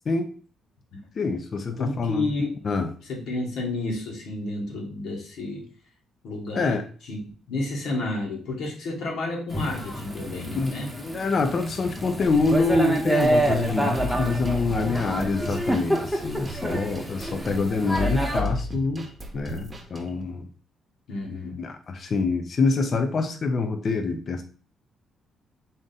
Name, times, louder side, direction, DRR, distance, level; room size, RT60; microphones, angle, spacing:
voice 1, 1.2-2.3 2.6-2.9 6.5-6.8 10.5-19.1 19.3-20.5 21.6-24.4, left 3 dB, 50° left, 6 dB, 0.5 m, -26 dB
voice 2, 1.8-2.6 3.1-5.6 6.2-6.8 7.1-10.9 15.1-15.4 21.1-21.6, left 2 dB, 80° left, -2 dB, 1.4 m, -31 dB
Thunder / Rain, 9.5-18.4, right 1 dB, ahead, 0.9 m, -28 dB
sound 1, 11.9-20.2, left 1 dB, 25° right, 0.9 m, -35 dB
3.7 x 2.5 x 4.0 m, 0.41 s
cardioid pair, 90°, 0 cm